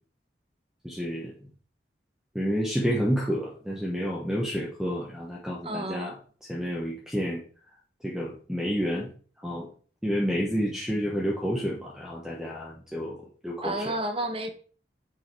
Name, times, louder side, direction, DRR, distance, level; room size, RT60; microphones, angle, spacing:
voice 1, 0.8-1.3 2.3-6.1 6.5-7.4 8.0-9.1 9.4-9.7 10.0-13.2 13.4-13.9, equal, 5° right, 1.3 m, -29 dB
voice 2, 5.6-6.2 13.6-14.5, right 1 dB, 30° right, 1.0 m, -31 dB
6.7 x 5.5 x 4.5 m
head